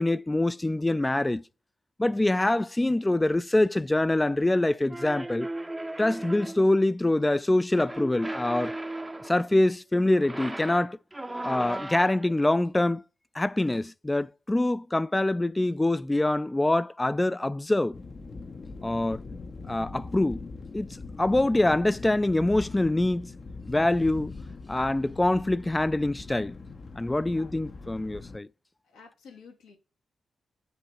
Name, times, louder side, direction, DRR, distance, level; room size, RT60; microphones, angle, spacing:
voice 1, 0.0-1.4 2.0-5.5 6.0-8.8 9.3-11.0 11.4-13.0 13.3-18.0 18.8-19.2 19.7-20.4 20.7-23.3 23.7-24.3 24.7-26.6 27.0-28.5, left 1 dB, 20° left, 0.4 m, -25 dB
sound 1, 4.9-6.7 7.7-9.5 10.1-12.4, right 1 dB, 15° right, 0.7 m, -36 dB
sound 2, 17.9-28.4, left 3 dB, 50° left, 0.9 m, -42 dB
voice 2, 27.2-27.5 28.9-29.8, left 5 dB, 85° left, 1.7 m, -51 dB
7.9 x 2.9 x 4.7 m
hypercardioid pair, 40°, 0 cm